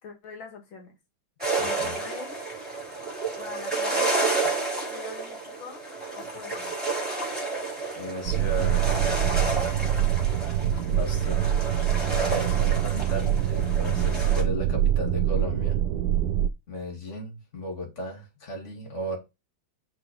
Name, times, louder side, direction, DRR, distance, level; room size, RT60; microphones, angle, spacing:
voice 1, 0.0-1.0 1.6-2.4 3.4-4.2 4.9-5.8 6.1-6.8 9.7-9.9, left 5 dB, 90° left, 2.5 m, -42 dB
sound 1, 1.4-14.4, right 3 dB, 5° right, 3.6 m, -31 dB
voice 2, 1.6-2.0 8.0-9.3 10.9-11.5 12.2-15.8 16.7-19.2, equal, 35° left, 2.6 m, -35 dB
sound 2, 8.2-16.5, right 11 dB, 75° right, 0.9 m, -25 dB
6.1 x 4.6 x 5.4 m
omnidirectional pair, 2.1 m